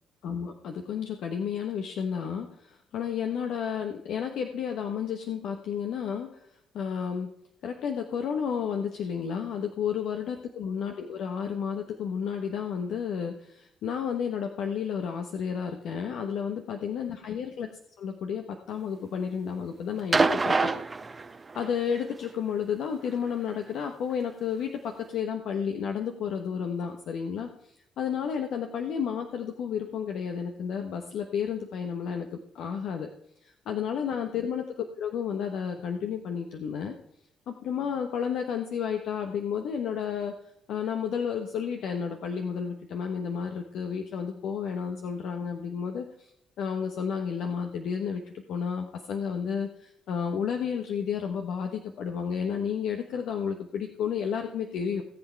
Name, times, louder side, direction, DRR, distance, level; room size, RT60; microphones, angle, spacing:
voice 1, 0.2-6.3 6.7-7.3 7.6-17.7 18.0-20.7 21.5-33.1 33.4-37.0 37.5-40.3 40.7-46.3 46.6-48.2 48.5-55.0, left 7 dB, 70° left, 4 dB, 1.2 m, -32 dB
sound 1, 20.1-21.8 23.1-23.2, right 3 dB, 30° right, 0.8 m, -25 dB
18.0 x 7.8 x 4.6 m, 0.75 s
hypercardioid pair, 55°, 0 cm